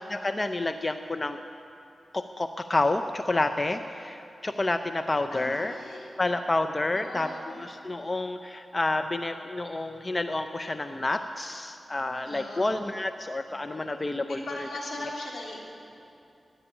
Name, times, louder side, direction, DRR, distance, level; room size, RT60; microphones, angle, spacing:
voice 1, 0.1-1.4 2.1-5.7 6.2-14.4, left 2 dB, 30° left, 8 dB, 0.6 m, -29 dB
voice 2, 5.3-6.1 6.9-7.5 12.2-12.7 14.3-15.6, left 1 dB, 80° left, -2 dB, 3.0 m, -39 dB
13.5 x 10.0 x 9.9 m, 2.7 s
cardioid pair, 70°, 0 cm